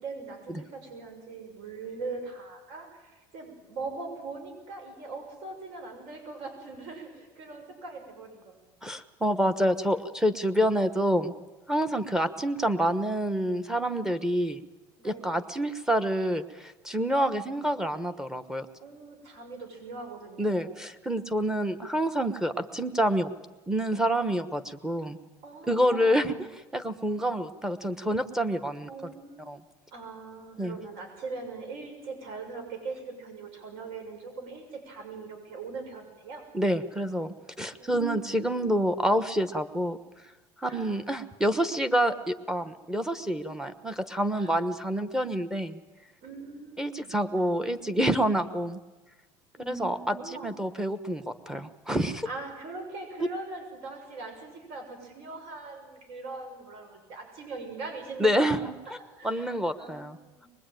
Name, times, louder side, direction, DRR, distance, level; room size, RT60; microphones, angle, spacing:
voice 1, 0.0-8.6 13.9-14.1 15.0-15.5 18.8-20.9 25.4-26.5 28.9-29.5 29.9-36.4 37.8-38.7 40.6-41.0 44.3-44.7 46.2-47.2 49.5-50.9 52.2-60.5, right 3 dB, 60° right, 4 dB, 6.7 m, -41 dB
voice 2, 8.8-11.3 11.7-14.6 15.0-18.7 20.4-23.3 23.7-25.2 25.7-26.3 26.7-28.9 29.5-29.6 30.6-30.8 36.5-40.0 40.6-45.8 46.8-48.8 49.7-52.3 58.2-58.7 59.2-60.2, equal, 5° right, 7 dB, 1.1 m, -27 dB
23.5 x 21.0 x 9.2 m, 1.1 s
cardioid pair, 155°, 11 cm